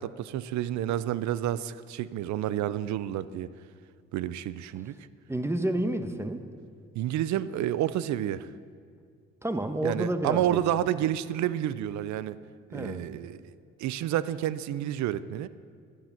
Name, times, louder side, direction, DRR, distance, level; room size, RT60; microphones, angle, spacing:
voice 1, 0.0-3.5 4.1-4.9 6.9-8.5 9.8-12.4 12.7-13.5 13.8-15.5, right 12 dB, 70° right, 16 dB, 0.6 m, -29 dB
voice 2, 5.3-6.5 9.4-10.6 12.7-13.1, right 1 dB, 10° right, 8 dB, 1.2 m, -30 dB
12.0 x 11.5 x 5.9 m, 2.2 s
supercardioid pair, 60°, 29 cm